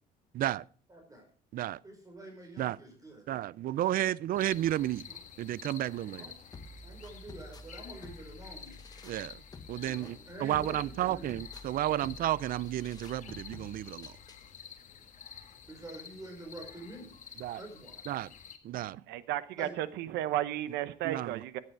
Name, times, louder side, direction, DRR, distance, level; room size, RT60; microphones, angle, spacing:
voice 1, 0.3-0.6 1.5-1.8 2.6-2.8 3.3-5.1 5.4-6.3 9.0-9.4 9.7-14.1 17.4-17.6 18.1-18.3 18.6-19.0 21.0-21.6, right 13 dB, 60° right, 0.5 m, -32 dB
voice 2, 0.9-1.2 1.8-3.3 5.0-5.1 5.8-6.3 6.8-8.8 9.8-11.3 15.7-18.0 19.6-19.7, right 1 dB, 20° right, 5.0 m, -47 dB
sound 1, 4.4-18.6, left 7 dB, 45° left, 1.6 m, -50 dB
sound 2, 6.5-14.5, left 2 dB, 25° left, 1.4 m, -50 dB
voice 3, 18.9-21.6, right 13 dB, 90° right, 0.9 m, -34 dB
13.5 x 9.6 x 4.6 m
cardioid pair, 110°, 17 cm